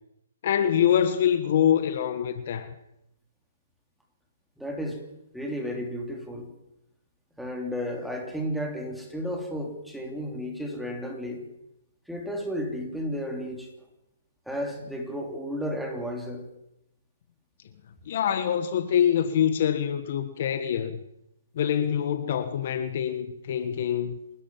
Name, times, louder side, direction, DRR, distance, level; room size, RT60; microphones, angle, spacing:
voice 1, 0.4-2.7 18.1-21.0 21.5-24.2, left 9 dB, 50° left, 1.6 m, -25 dB
voice 2, 4.6-5.0 5.3-6.5 7.4-11.4 12.1-13.7 14.5-16.4, equal, ahead, 3.3 m, -33 dB
28.0 x 13.5 x 7.4 m
hypercardioid pair, 155°, 0 cm